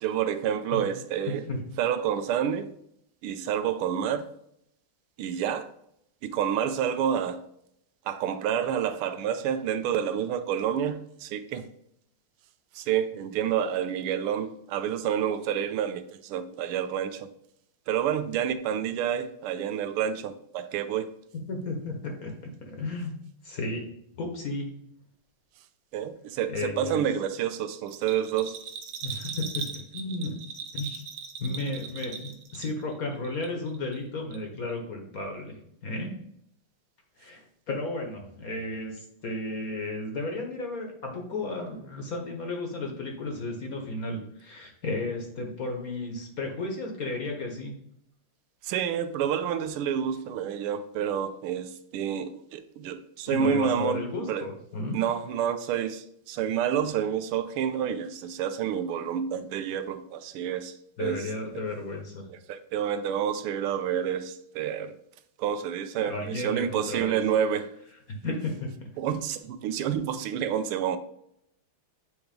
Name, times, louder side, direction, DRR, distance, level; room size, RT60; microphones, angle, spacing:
voice 1, 0.0-1.4 1.8-2.7 3.2-4.2 5.2-5.7 6.2-7.4 8.1-11.7 12.7-17.3 17.9-21.1 25.9-28.6 48.6-54.4 54.9-60.7 61.0-61.2 62.3-64.9 65.4-67.7 69.0-71.0, right 9 dB, 85° right, 10 dB, 1.5 m, -29 dB
voice 2, 21.3-23.1 23.4-23.9 24.2-24.7 26.5-27.0 29.0-30.3 30.7-31.0 31.4-36.1 37.2-47.7 53.3-55.0 61.0-62.3 66.0-67.2 68.1-68.9, left 2 dB, 55° left, 2 dB, 1.2 m, -34 dB
Bell, 27.9-33.0 33.2-34.0 34.3-34.4, right 6 dB, 70° right, 1.4 m, -39 dB
8.3 x 3.1 x 5.1 m, 0.73 s
omnidirectional pair, 2.4 m